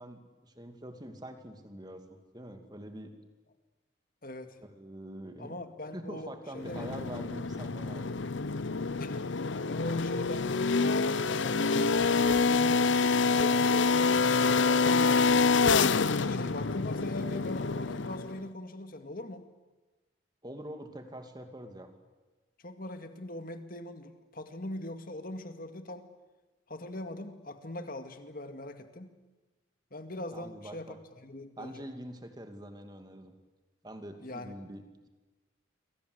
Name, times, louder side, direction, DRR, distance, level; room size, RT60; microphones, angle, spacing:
voice 1, 0.0-3.1 4.6-5.6 5.9-8.2 20.4-21.9 30.3-31.0 31.6-33.3 33.8-35.1, right 1 dB, 20° right, 6 dB, 2.6 m, -45 dB
voice 2, 4.2-4.6 5.4-6.9 9.0-9.3 9.7-15.4 16.1-19.5 22.6-26.1 26.7-29.1 29.9-31.8 34.2-34.6, left 1 dB, 45° left, 8 dB, 2.1 m, -41 dB
sound 1, 6.6-18.4, left 4 dB, 75° left, 0.8 m, -27 dB
28.0 x 23.5 x 8.1 m, 1.2 s
head